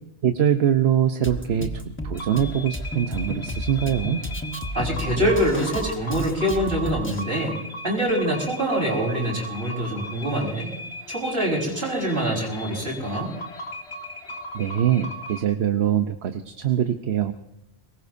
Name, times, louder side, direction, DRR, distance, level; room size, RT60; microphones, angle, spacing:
voice 1, 0.2-4.2 14.5-17.3, right 9 dB, 80° right, 7 dB, 1.1 m, -23 dB
Drum kit, 1.2-7.2, equal, 10° left, 1.1 m, -33 dB
sound 1, 2.1-15.4, equal, 90° left, 2.2 m, -38 dB
voice 2, 4.7-7.6 7.8-10.7 11.1-13.3, right 1 dB, 60° right, -1 dB, 5.3 m, -25 dB
23.5 x 20.0 x 2.7 m, 0.78 s
omnidirectional pair, 1.1 m